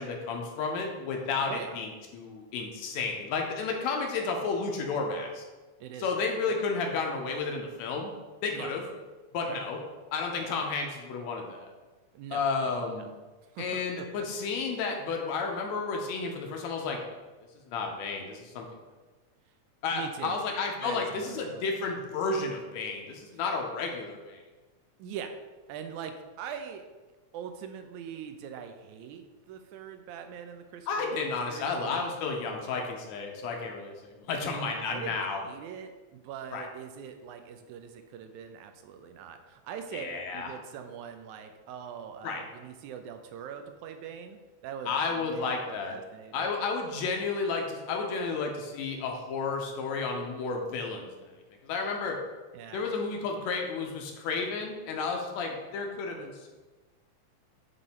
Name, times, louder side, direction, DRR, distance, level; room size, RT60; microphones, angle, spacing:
voice 1, 0.0-1.9 2.1-5.4 6.0-8.1 8.4-8.8 9.3-9.8 10.1-11.7 12.3-13.1 13.6-17.0 17.7-18.7 19.8-24.4 30.9-35.4 36.5-36.7 39.9-40.5 42.2-42.4 44.9-46.0 46.3-51.3 51.6-52.2 52.7-56.5, left 4 dB, 75° left, 2 dB, 1.9 m, -32 dB
voice 2, 1.4-1.7 5.8-6.1 8.5-8.7 9.5-9.6 10.4-10.5 12.1-13.1 13.5-14.3 19.9-20.4 20.8-21.7 25.0-25.3 25.7-26.9 27.3-32.1 34.6-40.1 40.3-46.5 52.5-52.8, right 8 dB, 85° right, 7 dB, 2.0 m, -42 dB
7.7 x 3.2 x 4.2 m, 1.3 s
omnidirectional pair, 3.4 m